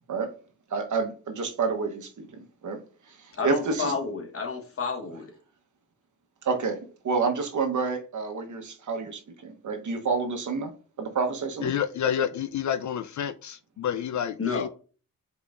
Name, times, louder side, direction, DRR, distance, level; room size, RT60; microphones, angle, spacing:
voice 1, 0.7-2.1 2.6-2.8 3.4-3.9 6.4-6.8 7.0-10.7 11.0-11.7, right 4 dB, 60° right, 1.0 m, -28 dB
voice 2, 3.4-5.3 14.4-14.7, left 5 dB, 40° left, 1.2 m, -30 dB
voice 3, 11.6-14.7, left 9 dB, 60° left, 0.4 m, -29 dB
5.3 x 4.1 x 2.4 m
cardioid pair, 80°, 34 cm